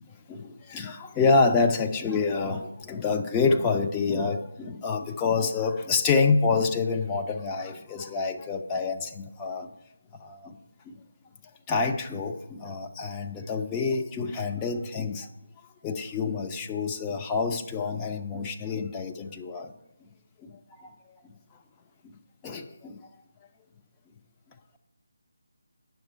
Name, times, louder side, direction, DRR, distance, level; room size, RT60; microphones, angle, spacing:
voice 1, 0.3-9.7 10.2-10.6 10.9-11.0 11.7-15.3 15.8-19.7 20.4-20.9 22.0-23.0, left 4 dB, 15° left, 3 dB, 0.5 m, -27 dB
9.3 x 6.5 x 4.5 m, 0.88 s
figure-of-eight pair, 155°, 0 cm